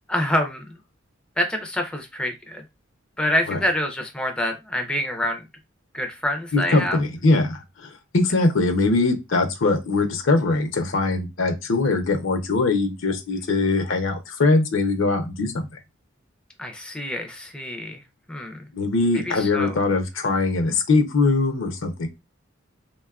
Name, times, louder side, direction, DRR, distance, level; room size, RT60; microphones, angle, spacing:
voice 1, 0.1-0.8 1.4-2.6 3.2-5.4 5.9-7.0 16.6-18.0 18.3-18.6 19.3-19.7, left 1 dB, 5° left, 0.4 m, -26 dB
voice 2, 6.5-15.7 18.7-22.1, left 3 dB, 70° left, 0.6 m, -22 dB
3.5 x 2.2 x 2.3 m
head